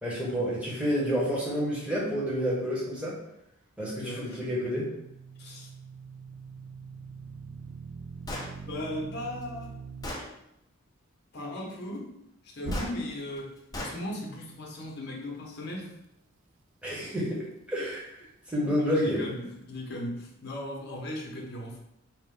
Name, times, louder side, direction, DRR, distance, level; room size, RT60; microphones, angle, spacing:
voice 1, 0.0-3.2 3.8-4.9 16.8-19.2, equal, 5° right, -7 dB, 1.0 m, -29 dB
voice 2, 3.9-4.4 5.4-5.7 8.7-9.8 11.3-12.1 12.4-15.9 18.6-21.8, left 1 dB, 50° left, -1 dB, 0.9 m, -37 dB
sound 1, 4.3-10.1 12.6-13.4, right 3 dB, 60° right, 0.4 m, -42 dB
Gunshot gunfire, 8.3-8.5 9.4-9.5 10.0-10.3 12.7-12.9 13.7-14.0, left 1 dB, 15° left, 0.6 m, -35 dB
4.5 x 2.4 x 3.7 m, 0.81 s
head